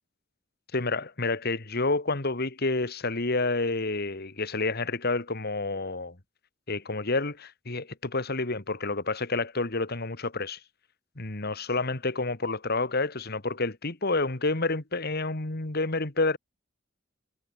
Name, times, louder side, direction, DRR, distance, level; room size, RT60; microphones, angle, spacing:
voice 1, 0.7-6.2 6.7-10.6 11.2-16.4, left 3 dB, 50° left, 2.0 m, -29 dB
head